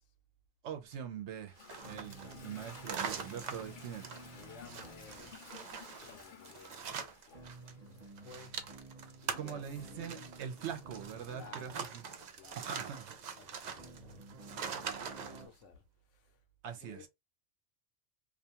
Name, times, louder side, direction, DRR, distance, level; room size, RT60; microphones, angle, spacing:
voice 1, 0.6-4.3 9.3-12.1 12.6-13.2 16.6-17.1, right 8 dB, 70° right, 0.8 m, -43 dB
Toilet flush, 0.9-13.7, left 6 dB, 50° left, 0.7 m, -57 dB
sound 1, 1.6-7.7 8.0-15.4, right 6 dB, 90° right, 0.3 m, -43 dB
sound 2, 1.8-6.2 7.3-12.2 13.7-15.5, right 3 dB, 35° right, 0.7 m, -53 dB
voice 2, 4.3-5.7 6.0-8.6 9.2-10.5 11.1-16.4 16.7-17.1, left 6 dB, 75° left, 0.9 m, -57 dB
2.4 x 2.2 x 2.8 m
omnidirectional pair, 1.3 m